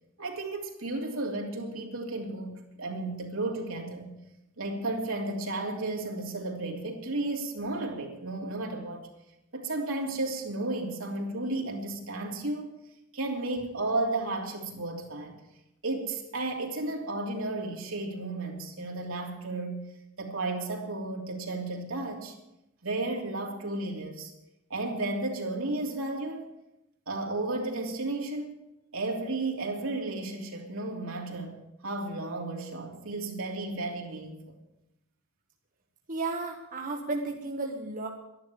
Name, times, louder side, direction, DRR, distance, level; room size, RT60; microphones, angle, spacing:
voice 1, 0.2-4.1 4.6-9.1 9.5-12.8 13.1-15.3 15.8-19.9 20.2-22.4 22.8-24.3 24.7-26.5 27.1-28.6 28.9-34.5, right 2 dB, 75° right, 1 dB, 3.1 m, -33 dB
voice 2, 36.1-38.1, right 3 dB, 40° right, 1 dB, 1.4 m, -33 dB
12.5 x 11.0 x 9.4 m, 0.90 s
head